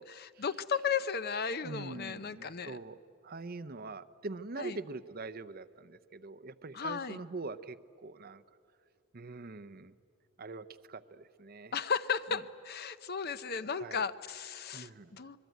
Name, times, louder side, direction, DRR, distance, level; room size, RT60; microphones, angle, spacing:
voice 1, 0.0-2.8 4.6-4.8 6.7-7.2 11.7-15.4, left 6 dB, 45° left, 13 dB, 0.7 m, -35 dB
voice 2, 1.6-3.0 3.2-8.4 9.1-9.9 10.4-11.8 13.7-14.0 14.7-15.1, right 3 dB, 45° right, 12 dB, 0.7 m, -43 dB
26.0 x 21.5 x 9.3 m, 2.4 s
head